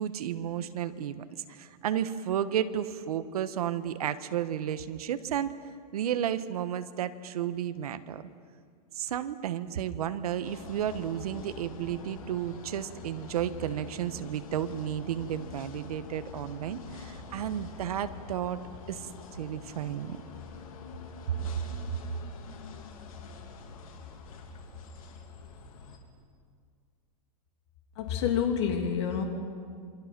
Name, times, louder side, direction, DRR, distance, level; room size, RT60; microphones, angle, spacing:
voice 1, 0.0-5.5 5.9-8.2 8.9-18.6 18.9-20.2 21.9-22.0, right 10 dB, 65° right, 11 dB, 1.3 m, -32 dB
sound 1, 10.4-26.0, left 5 dB, 60° left, 2.9 m, -45 dB
voice 2, 28.0-29.2, left 8 dB, 45° left, 4 dB, 2.9 m, -28 dB
28.0 x 24.0 x 6.1 m, 2.1 s
supercardioid pair, 175°, 20 cm